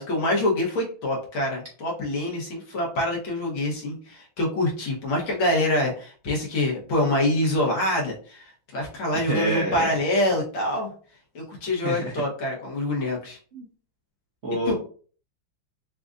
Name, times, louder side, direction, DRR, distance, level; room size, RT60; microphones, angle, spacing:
voice 1, 0.0-8.4 8.7-10.9 11.4-13.4 14.7-14.8, left 1 dB, 85° left, -1 dB, 2.0 m, -25 dB
voice 2, 9.3-10.0 11.8-12.2 13.5-13.7 14.4-14.7, right 2 dB, 60° right, -2 dB, 0.7 m, -27 dB
5.8 x 2.5 x 2.5 m, 0.42 s
omnidirectional pair, 2.1 m